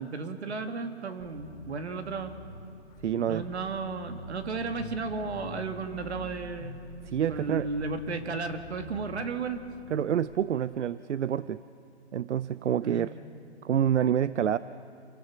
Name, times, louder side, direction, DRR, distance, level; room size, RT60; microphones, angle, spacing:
voice 1, 0.0-2.4 3.3-6.8 7.3-9.6 12.8-13.1, right 4 dB, 70° right, 7 dB, 2.0 m, -34 dB
sound 1, 1.2-10.3, left 3 dB, 10° left, 0.6 m, -46 dB
voice 2, 3.0-3.4 7.0-7.7 9.9-11.6 12.1-13.1 13.6-14.6, right 9 dB, 85° right, 16 dB, 0.6 m, -27 dB
28.5 x 17.0 x 6.0 m, 2.7 s
hypercardioid pair, 160°, 34 cm